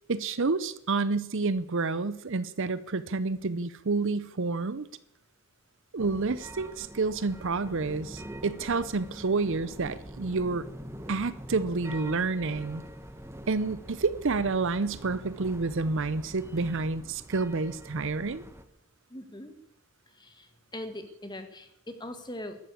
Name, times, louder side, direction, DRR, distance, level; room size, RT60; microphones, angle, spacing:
voice 1, 0.1-4.9 5.9-10.7 11.1-12.8 13.5-18.4, right 3 dB, 55° right, 16 dB, 0.7 m, -29 dB
sound 1, 6.0-18.6, right 1 dB, 10° right, 1.0 m, -44 dB
voice 2, 19.1-19.5 20.2-22.6, left 1 dB, 20° left, 8 dB, 1.7 m, -41 dB
13.5 x 11.5 x 8.5 m, 0.82 s
head